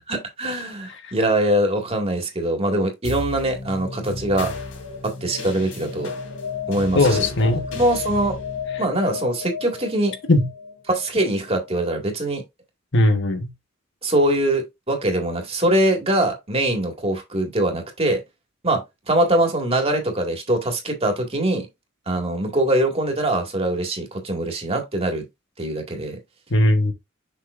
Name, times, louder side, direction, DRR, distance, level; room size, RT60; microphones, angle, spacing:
voice 1, 0.1-4.5 5.0-6.1 6.7-7.3 7.7-8.4 8.8-10.2 10.9-12.4 14.0-18.2 18.6-21.7 22.1-25.2 25.6-26.2, right 1 dB, 30° right, 2.0 m, -22 dB
sound 1, 3.0-11.8, left 5 dB, 80° left, 3.0 m, -32 dB
voice 2, 6.9-7.6 10.3-10.5 12.9-13.5 26.5-26.9, left 1 dB, 60° left, 1.3 m, -18 dB
6.8 x 5.9 x 2.5 m
head